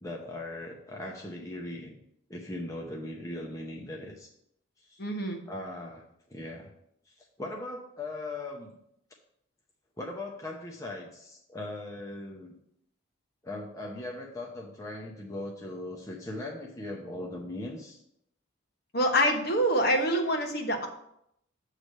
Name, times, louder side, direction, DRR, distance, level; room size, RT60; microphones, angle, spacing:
voice 1, 0.0-2.0 2.3-4.3 4.9-5.0 5.5-6.0 6.3-6.7 7.1-8.7 10.0-12.5 13.4-18.0, left 1 dB, 15° left, -1 dB, 0.7 m, -39 dB
voice 2, 5.0-5.4 18.9-20.9, equal, 50° left, 3 dB, 1.0 m, -26 dB
8.1 x 3.2 x 6.4 m, 0.76 s
head